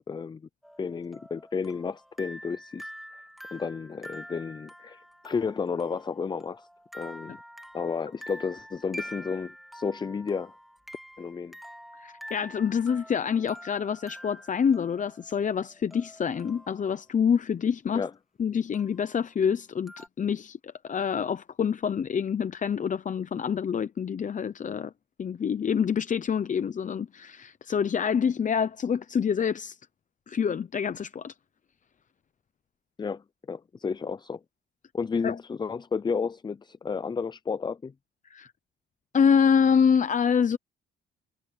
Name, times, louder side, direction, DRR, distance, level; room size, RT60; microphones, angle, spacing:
voice 1, 0.1-0.4 0.8-3.2 3.5-6.7 6.9-7.4 7.7-10.5 11.2-11.5 17.9-18.1 33.0-34.4 34.9-37.9, left 5 dB, 20° left, 0.4 m, -32 dB
sound 1, 0.6-17.1 18.7-19.2 19.9-20.1, equal, ahead, 2.2 m, -46 dB
voice 2, 12.0-18.0 18.4-24.9 25.2-29.8 30.3-31.3 35.2-35.4 38.3-38.5 39.1-40.6, left 7 dB, 40° left, 0.8 m, -26 dB
cardioid pair, 90°, 20 cm